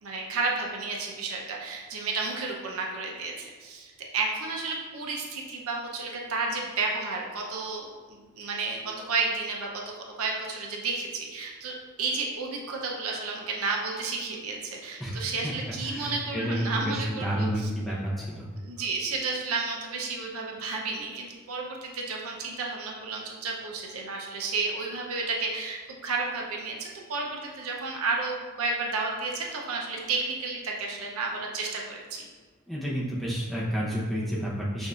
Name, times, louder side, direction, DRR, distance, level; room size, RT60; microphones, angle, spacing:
voice 1, 0.0-17.7 18.6-32.3, right 3 dB, 90° right, -1 dB, 0.7 m, -32 dB
voice 2, 15.0-15.5 15.8-18.5 32.7-34.9, equal, ahead, -7 dB, 0.7 m, -30 dB
6.3 x 2.6 x 2.4 m, 1.4 s
head